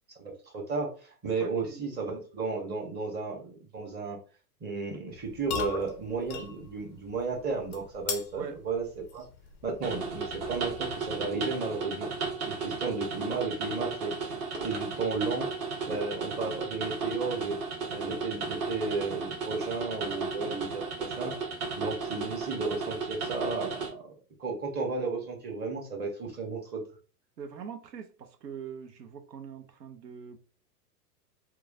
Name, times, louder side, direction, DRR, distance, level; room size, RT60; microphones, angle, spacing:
voice 1, 0.2-4.2 4.6-8.8 9.1-9.2 9.6-12.1 12.4-14.3 14.6-15.5 15.9-17.6 17.9-21.3 21.8-26.8, right 4 dB, 20° right, 0.9 m, -33 dB
voice 2, 1.4-1.8 8.4-8.6 15.9-16.1 20.4-20.6 27.4-30.4, right 7 dB, 85° right, 0.7 m, -43 dB
sound 1, 5.1-11.5, left 6 dB, 30° left, 0.4 m, -41 dB
sound 2, 9.8-23.9, right 4 dB, 40° right, 1.2 m, -35 dB
3.0 x 2.3 x 2.4 m
hypercardioid pair, 110°, 48 cm